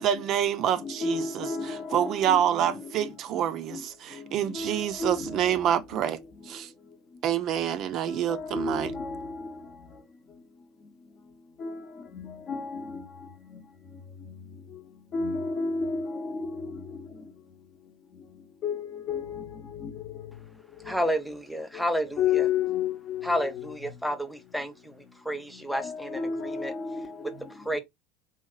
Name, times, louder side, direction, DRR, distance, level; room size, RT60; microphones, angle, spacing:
voice 1, 0.0-1.5 1.9-6.2 6.5-6.7 7.2-8.9, right 10 dB, 50° right, 0.3 m, -27 dB
voice 2, 0.6-3.9 4.1-6.0 8.1-9.5 11.6-11.8 12.1-13.0 15.1-17.0 18.6-20.1 20.8-20.9 21.7-21.8 22.2-23.7 25.7-27.5, left 5 dB, 40° left, 0.7 m, -32 dB
voice 3, 20.8-22.5 23.2-26.7 27.6-27.8, equal, ahead, 0.6 m, -31 dB
3.0 x 2.8 x 2.3 m
hypercardioid pair, 90°, 0 cm